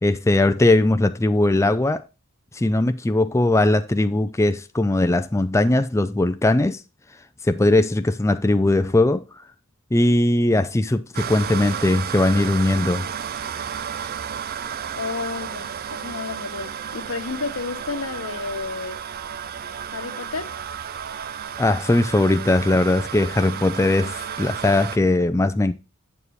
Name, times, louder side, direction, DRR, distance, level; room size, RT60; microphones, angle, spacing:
voice 1, 0.0-2.0 2.5-6.8 7.4-9.2 9.9-13.1 21.6-25.7, left 2 dB, 15° left, 0.4 m, -19 dB
sound 1, 11.1-25.0, right 8 dB, 45° right, 0.4 m, -32 dB
voice 2, 14.9-19.0 19.9-20.5, left 4 dB, 90° left, 1.2 m, -31 dB
8.2 x 7.2 x 3.1 m
head